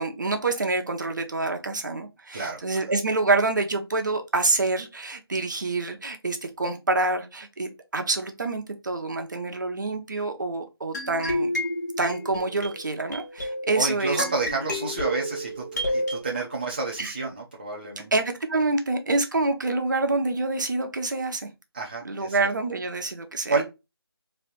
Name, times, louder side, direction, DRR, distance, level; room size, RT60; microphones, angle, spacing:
voice 1, 0.0-11.5 12.0-14.2 17.0-17.2 18.1-21.5 22.0-23.6, right 3 dB, 50° right, 0.8 m, -27 dB
sound 1, 10.9-16.2, equal, 45° left, 1.2 m, -30 dB
voice 2, 13.7-18.1 21.7-22.4 23.5-23.6, right 3 dB, 20° right, 0.5 m, -30 dB
3.3 x 2.7 x 3.9 m
figure-of-eight pair, 170°, 13 cm